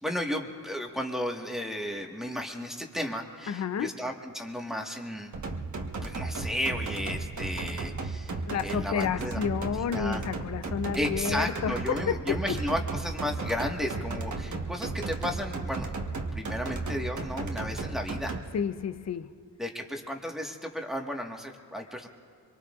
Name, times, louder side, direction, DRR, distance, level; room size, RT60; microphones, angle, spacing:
voice 1, 0.0-5.3 6.0-8.3 8.6-10.2 10.9-15.9 16.3-18.4 19.6-22.1, equal, ahead, 1 dB, 1.6 m, -34 dB
voice 2, 3.5-3.9 8.5-12.4 18.5-19.3, left 7 dB, 45° left, 11 dB, 0.6 m, -30 dB
sound 1, 5.3-18.4, right 3 dB, 50° right, 1.3 m, -34 dB
24.5 x 23.5 x 2.5 m, 2.3 s
cardioid pair, 80°, 37 cm